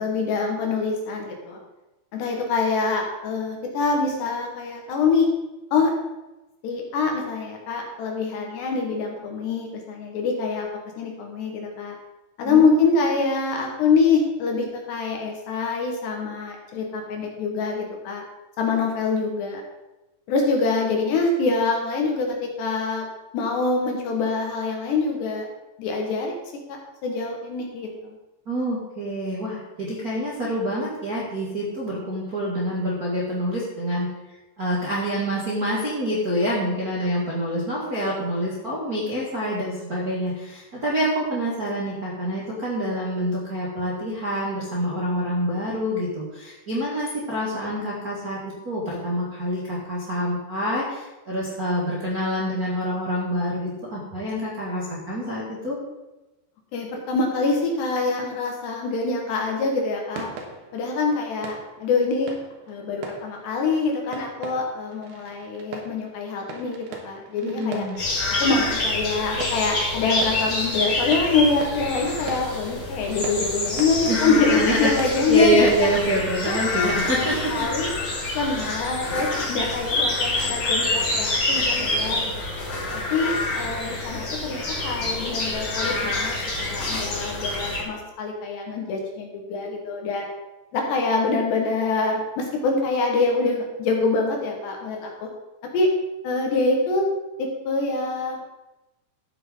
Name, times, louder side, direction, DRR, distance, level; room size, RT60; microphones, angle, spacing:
voice 1, 0.0-1.6 2.1-5.3 5.7-5.9 6.6-10.7 11.0-12.0 12.4-18.2 18.6-19.6 20.3-23.1 23.3-25.5 25.8-26.4 26.7-28.2 56.7-60.3 60.7-62.4 62.7-67.8 68.4-75.9 76.5-77.9 78.3-82.3 82.9-90.3 90.7-95.3 95.7-95.9 96.2-97.1 97.4-98.4, left 4 dB, 70° left, 1 dB, 3.5 m, -25 dB
voice 2, 12.4-12.9 28.4-34.1 34.6-55.8 67.4-68.0 74.0-77.7, equal, 40° right, -7 dB, 1.3 m, -26 dB
sound 1, 60.1-76.1, right 3 dB, 65° right, 2.8 m, -40 dB
sound 2, 68.0-87.8, left 2 dB, 45° left, 4.4 m, -27 dB
12.5 x 8.8 x 3.9 m, 1.0 s
omnidirectional pair, 5.4 m